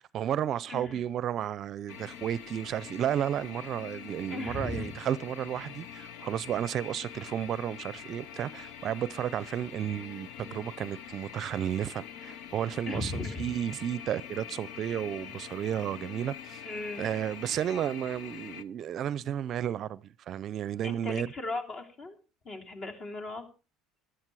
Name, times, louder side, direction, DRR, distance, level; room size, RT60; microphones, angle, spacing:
voice 1, 0.0-13.1 13.4-16.6 17.0-21.3, right 10 dB, 50° right, 0.5 m, -33 dB
voice 2, 0.7-1.0 4.3-4.9 12.9-13.5 16.6-17.1 20.8-22.2 22.4-23.4, left 2 dB, 40° left, 3.1 m, -37 dB
sound 1, 1.9-18.6, left 9 dB, 75° left, 0.9 m, -45 dB
14.0 x 11.5 x 4.8 m
supercardioid pair, 105°, 0 cm